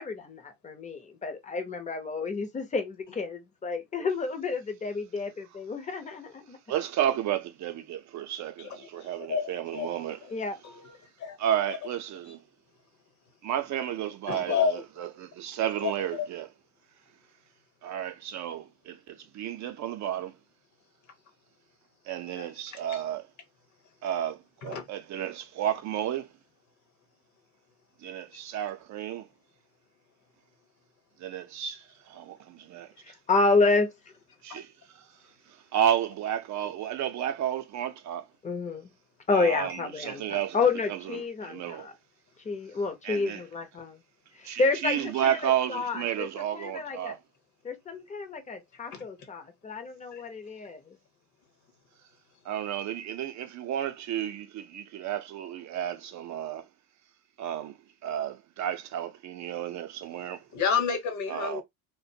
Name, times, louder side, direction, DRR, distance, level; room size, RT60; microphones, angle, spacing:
voice 1, 0.0-6.6 10.3-10.5 33.0-34.0 38.4-38.9 39.3-41.9 42.4-44.0 44.3-47.2 47.6-51.0, left 3 dB, 20° left, 0.6 m, -30 dB
voice 2, 6.7-10.2 11.4-12.4 13.4-16.5 17.8-20.3 22.0-23.3 24.0-26.3 28.0-29.3 31.2-33.1 34.4-35.1 35.5-38.3 39.3-40.6 40.9-41.9 43.0-43.4 44.4-47.2 52.4-56.7 57.4-60.4 61.3-61.6, right 10 dB, 55° right, 0.5 m, -32 dB
voice 3, 8.6-9.9 10.2-10.3 10.6-11.4 11.7-11.8 14.3-15.1 15.8-15.9 22.3-23.0 24.6-24.9 45.2-45.4 48.9-49.3 50.1-50.2 60.5-61.6, left 6 dB, 55° left, 1.1 m, -31 dB
2.4 x 2.2 x 2.7 m
cardioid pair, 120°, 35 cm